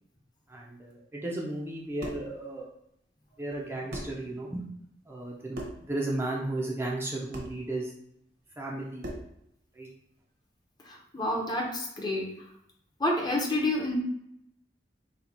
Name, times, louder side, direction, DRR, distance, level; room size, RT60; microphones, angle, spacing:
voice 1, 0.5-2.7 3.4-4.6 5.1-7.9 8.6-9.1 9.7-9.9, right 2 dB, 15° right, -4 dB, 0.6 m, -34 dB
sound 1, 1.7-2.3 3.5-3.6 3.9-4.2 5.5-5.9 7.3-7.6 9.0-9.4, equal, 60° right, 1.0 m, -39 dB
voice 2, 11.1-12.3 13.0-13.9, left 1 dB, 25° left, 0 dB, 0.9 m, -28 dB
4.1 x 2.3 x 4.3 m, 0.76 s
head